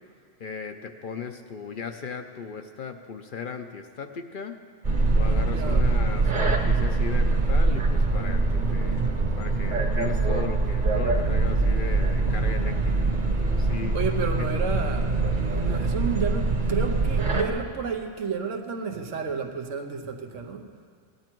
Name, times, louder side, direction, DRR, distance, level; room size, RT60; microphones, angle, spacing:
voice 1, 0.4-4.6 5.1-13.9 14.4-14.5, left 6 dB, 55° left, 6 dB, 0.7 m, -37 dB
sound 1, 4.8-17.5, right 3 dB, 40° right, 1.2 m, -23 dB
voice 2, 5.4-5.9 13.9-20.7, right 5 dB, 85° right, 4 dB, 1.3 m, -31 dB
17.5 x 10.5 x 4.5 m, 2.1 s
omnidirectional pair, 1.2 m